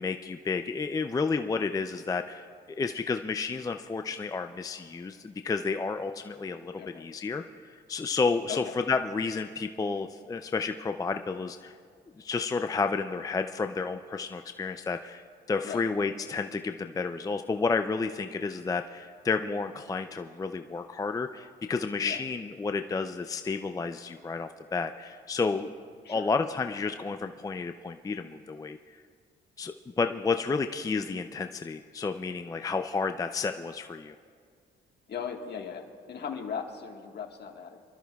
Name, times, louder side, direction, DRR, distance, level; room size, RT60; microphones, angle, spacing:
voice 1, 0.0-11.7 12.2-25.7 26.1-28.8 29.6-34.1, left 4 dB, 20° left, 7 dB, 0.4 m, -31 dB
voice 2, 35.1-37.8, left 7 dB, 55° left, 3 dB, 1.5 m, -38 dB
25.5 x 13.0 x 2.3 m, 2.1 s
cardioid pair, 90°, 20 cm